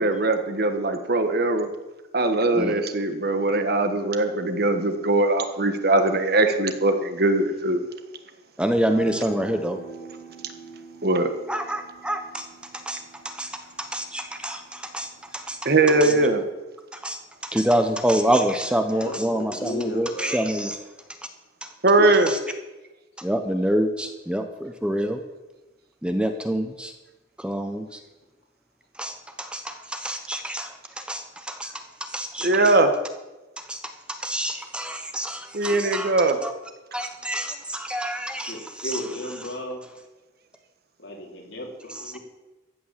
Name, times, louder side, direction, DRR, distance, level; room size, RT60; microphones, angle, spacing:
voice 1, 0.0-1.7 2.1-7.8 11.0-11.3 15.6-16.4 21.8-22.3 32.4-32.9 35.5-36.4, right 2 dB, 55° right, 7 dB, 1.4 m, -21 dB
voice 2, 7.5-7.8 16.0-16.4 18.9-20.4 38.5-39.8 41.0-42.2, left 1 dB, 70° left, -1 dB, 4.1 m, -35 dB
voice 3, 8.6-9.8 11.5-12.5 12.7-13.5 13.8-15.7 16.0-16.1 16.9-17.2 17.5-20.8 22.3-22.4 23.2-25.2 26.0-26.9 27.4-28.0 29.0-31.7 32.0-32.8 33.6-33.8 34.1-36.1 36.4-36.5 36.9-39.0, right 1 dB, 5° right, 6 dB, 0.9 m, -27 dB
sound 1, 8.7-15.3, right 4 dB, 50° left, 5.7 m, -43 dB
14.5 x 9.3 x 7.5 m, 1.1 s
head